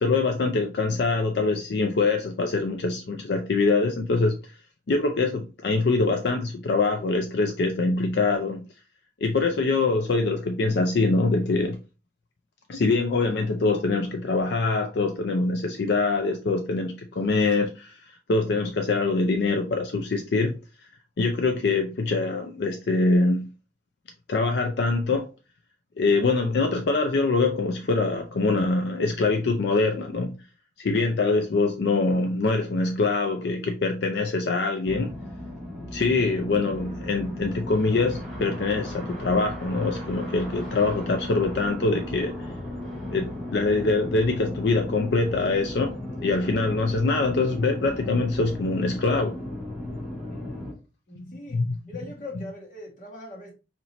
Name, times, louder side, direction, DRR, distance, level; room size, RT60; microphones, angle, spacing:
voice 1, 0.0-4.4 4.9-8.6 9.2-11.8 12.7-18.0 18.3-20.5 21.2-23.5 24.3-25.3 26.0-30.3 30.8-35.1 35.9-42.3 43.1-45.9 46.2-49.4 51.2-51.3 51.5-51.8, left 3 dB, 60° left, 0.4 m, -24 dB
sound 1, 34.8-50.7, left 1 dB, ahead, 1.2 m, -36 dB
voice 2, 50.3-50.7 51.1-51.6 51.9-53.5, left 2 dB, 45° left, 1.4 m, -41 dB
4.1 x 3.0 x 3.0 m
head